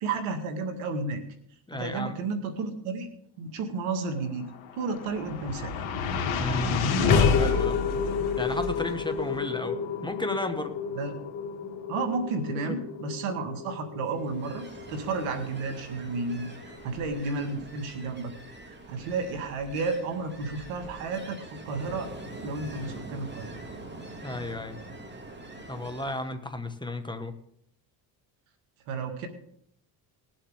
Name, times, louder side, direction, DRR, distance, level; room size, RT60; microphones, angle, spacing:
voice 1, 0.0-1.2 1.7-3.1 3.4-4.5 4.8-6.1 11.0-11.2 11.9-18.3 18.7-22.1 22.4-23.5 28.9-29.3, right 4 dB, 90° right, 7 dB, 2.0 m, -32 dB
voice 2, 1.7-2.2 6.4-6.9 7.2-7.8 8.4-10.7 12.6-12.8 24.2-24.8 25.7-27.4, left 1 dB, 10° left, 7 dB, 1.6 m, -33 dB
sound 1, 4.5-16.9, left 5 dB, 70° left, 2.2 m, -29 dB
Ocean, 14.1-26.3, right 2 dB, 20° right, 2.5 m, -44 dB
19.5 x 7.6 x 3.7 m, 0.69 s
supercardioid pair, 75°, 49 cm